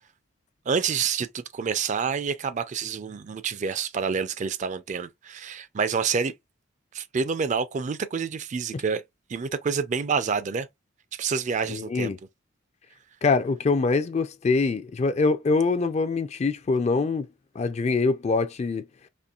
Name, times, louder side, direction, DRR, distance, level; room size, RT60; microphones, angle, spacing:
voice 1, 0.7-6.3 6.9-9.0 9.3-10.7 11.1-12.1, right 6 dB, 35° right, 0.4 m, -28 dB
voice 2, 11.7-12.2 13.2-17.3 17.6-18.9, left 4 dB, 35° left, 0.3 m, -24 dB
4.2 x 2.9 x 2.4 m
head